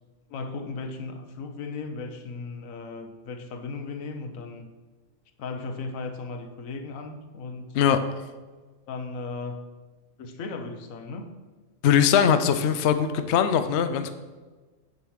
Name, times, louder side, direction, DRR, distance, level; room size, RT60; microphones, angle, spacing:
voice 1, 0.3-4.7 5.4-7.8 8.9-9.7 10.2-11.3, left 3 dB, 90° left, 7 dB, 1.2 m, -36 dB
voice 2, 11.8-14.1, left 8 dB, 65° left, 9 dB, 0.8 m, -21 dB
7.2 x 6.7 x 4.7 m, 1.3 s
omnidirectional pair, 1.4 m